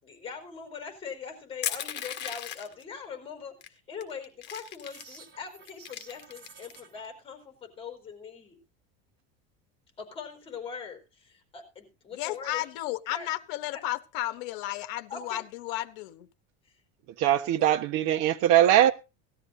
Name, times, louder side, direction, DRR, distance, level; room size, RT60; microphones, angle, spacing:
voice 1, 0.0-8.6 10.0-12.6 13.1-13.3 13.7-13.8 15.1-15.4 17.6-17.7, left 6 dB, 20° left, 4.4 m, -42 dB
Crushing, 1.6-2.8 3.6-3.7 4.0-5.2 5.7-6.8, left 11 dB, 40° left, 1.7 m, -36 dB
sound 1, 4.8-7.0, right 5 dB, 35° right, 4.7 m, -52 dB
voice 2, 12.1-16.3, left 15 dB, 65° left, 1.1 m, -33 dB
voice 3, 17.2-18.9, right 12 dB, 50° right, 1.3 m, -21 dB
18.5 x 13.0 x 2.7 m
cardioid pair, 165°, 29 cm